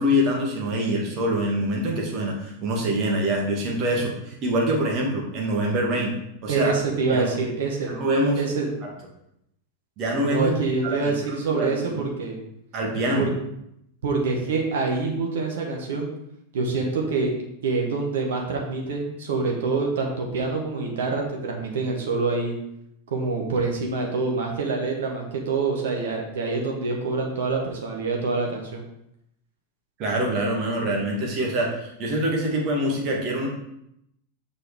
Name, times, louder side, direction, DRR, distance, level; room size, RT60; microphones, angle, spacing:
voice 1, 0.0-6.1 6.4-6.7 7.1-7.3 7.8-8.4 10.0-10.5 10.8-11.1 11.5-12.1 12.7-13.3 30.0-33.5, equal, 40° right, -1 dB, 2.2 m, -25 dB
voice 2, 6.5-7.9 8.4-8.7 10.3-12.4 13.1-13.3 14.0-16.1 16.5-17.3 17.6-22.5 23.1-28.8, right 4 dB, 60° right, 0 dB, 1.5 m, -26 dB
6.7 x 5.2 x 4.9 m, 0.79 s
figure-of-eight pair, 90°, 0 cm